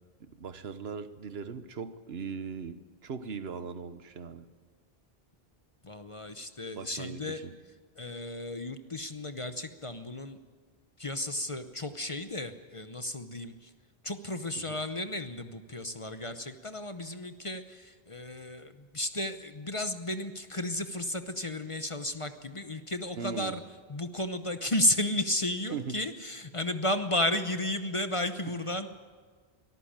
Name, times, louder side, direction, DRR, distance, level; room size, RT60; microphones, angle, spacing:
voice 1, 0.2-2.8 3.0-4.5 6.7-7.5 14.6-14.8 23.2-23.6 25.7-26.0, right 5 dB, 85° right, 11 dB, 1.3 m, -39 dB
voice 2, 5.8-7.4 8.0-10.4 11.0-13.7 14.0-23.6 23.9-28.9, left 1 dB, 35° left, 9 dB, 0.9 m, -33 dB
23.0 x 14.0 x 8.9 m, 1.5 s
omnidirectional pair, 1.0 m